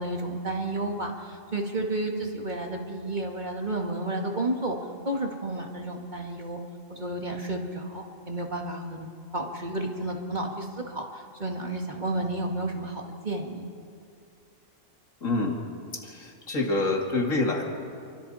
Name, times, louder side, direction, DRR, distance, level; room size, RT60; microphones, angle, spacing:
voice 1, 0.0-4.8 5.0-6.6 6.9-9.1 9.3-13.7, right 2 dB, 35° right, 1 dB, 2.2 m, -31 dB
voice 2, 15.2-15.6 15.9-17.6, left 2 dB, 70° left, 1 dB, 2.8 m, -27 dB
29.0 x 24.0 x 4.3 m, 2.4 s
omnidirectional pair, 1.4 m